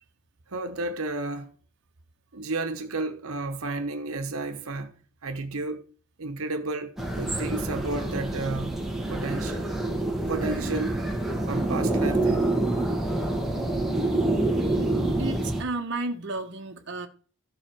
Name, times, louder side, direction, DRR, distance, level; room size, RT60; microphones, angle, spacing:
voice 1, 0.5-1.5 2.3-5.8 6.2-8.8 9.1-9.6 10.3-11.0 11.5-12.5, right 2 dB, 80° right, 1.1 m, -32 dB
sound 1, 7.0-15.6, right 2 dB, ahead, 1.5 m, -27 dB
voice 2, 15.2-17.1, right 2 dB, 55° right, 1.2 m, -33 dB
13.5 x 4.9 x 6.2 m
head